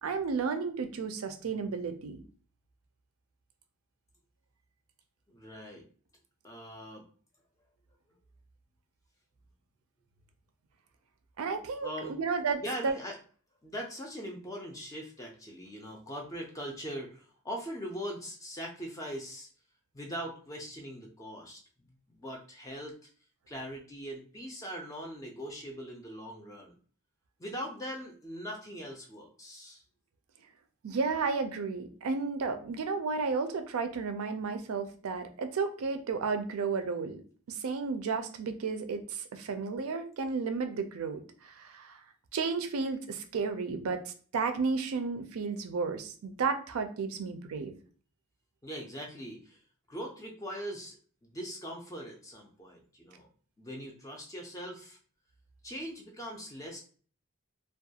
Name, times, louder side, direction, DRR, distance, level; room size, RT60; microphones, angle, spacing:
voice 1, 0.0-2.2 11.4-12.9 30.8-37.2 37.5-42.0 42.3-47.7, right 4 dB, 80° right, 7 dB, 0.4 m, -33 dB
voice 2, 5.3-5.8 6.4-7.0 11.8-12.2 12.6-13.2 13.6-19.5 19.9-21.6 22.1-23.0 23.5-26.7 27.4-29.8 48.6-49.6 49.9-53.3 53.6-55.0 55.6-56.8, equal, 15° left, 0 dB, 0.4 m, -41 dB
2.3 x 2.2 x 2.7 m, 0.42 s
head